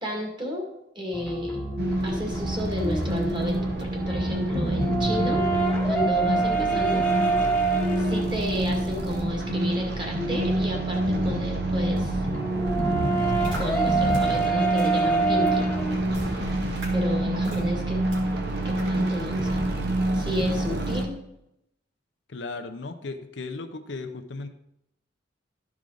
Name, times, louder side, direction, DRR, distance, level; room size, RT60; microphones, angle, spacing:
voice 1, 0.0-0.6 1.0-1.7 2.0-5.4 5.8-7.1 8.0-12.3 13.6-15.8 16.9-18.0 18.6-19.7 20.1-21.1, left 1 dB, 25° right, 0 dB, 1.9 m, -32 dB
sound 1, 1.1-16.5, right 3 dB, 5° left, 1.1 m, -27 dB
sound 2, 1.8-21.0, right 1 dB, 60° right, 1.0 m, -27 dB
sound 3, 13.4-13.6 14.1-14.2 14.8-14.9 15.5-15.6 16.1-16.3 16.8-16.9 17.4-17.6 18.1-18.2 18.8-18.9, right 1 dB, 75° right, 2.7 m, -37 dB
voice 2, 22.3-24.5, left 3 dB, 70° left, 7 dB, 0.7 m, -36 dB
13.0 x 4.9 x 3.9 m, 0.83 s
head